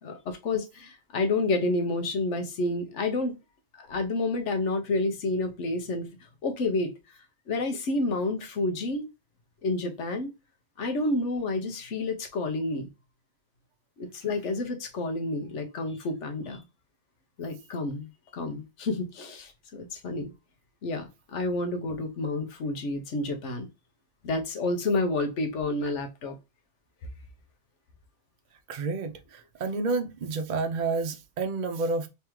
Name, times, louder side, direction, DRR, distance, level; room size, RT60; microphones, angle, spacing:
voice 1, 0.0-3.4 3.7-6.1 6.4-6.9 7.5-9.1 9.6-10.3 10.8-12.9 14.0-16.7 17.4-20.3 20.8-23.7 24.2-26.4, left 2 dB, 85° left, 1.2 m, -29 dB
voice 2, 28.7-32.1, right 3 dB, 50° right, 0.6 m, -30 dB
3.5 x 3.2 x 3.0 m
omnidirectional pair, 1.2 m